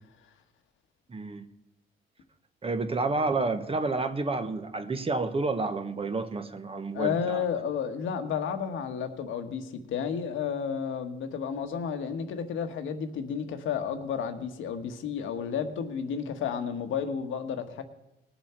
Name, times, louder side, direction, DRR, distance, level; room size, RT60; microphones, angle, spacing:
voice 1, 1.1-1.5 2.6-7.4, right 3 dB, 30° right, 8 dB, 1.2 m, -30 dB
voice 2, 6.9-17.8, left 7 dB, 80° left, 7 dB, 1.4 m, -32 dB
19.5 x 7.2 x 4.4 m, 0.87 s
cardioid pair, 90°, 20 cm